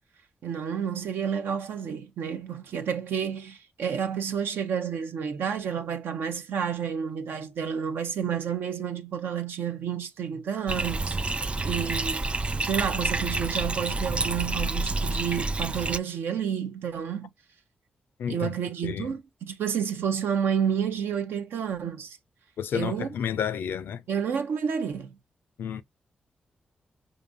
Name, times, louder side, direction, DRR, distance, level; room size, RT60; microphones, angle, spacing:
voice 1, 0.4-12.2 12.6-17.3 18.3-22.2 22.7-23.1 24.1-25.2, right 7 dB, 80° right, 0.6 m, -30 dB
Bathtub (filling or washing), 10.7-16.0, right 3 dB, 35° right, 0.3 m, -29 dB
voice 2, 18.2-18.5 18.8-19.1 22.6-24.0 25.6-25.8, left 8 dB, 80° left, 0.4 m, -31 dB
5.0 x 2.5 x 2.5 m
supercardioid pair, 45°, 4 cm